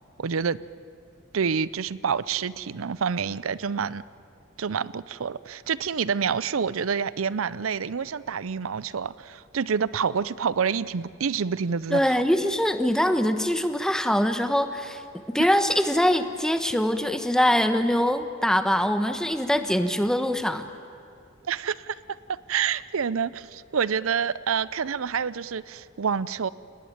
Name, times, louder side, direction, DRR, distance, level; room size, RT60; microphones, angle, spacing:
voice 1, 0.2-0.6 1.3-4.0 4.6-12.2 21.5-22.0 22.5-26.5, right 6 dB, 85° right, 0.6 m, -27 dB
voice 2, 11.9-15.0 15.3-20.7, equal, 5° left, 1.2 m, -23 dB
29.5 x 19.5 x 9.4 m
head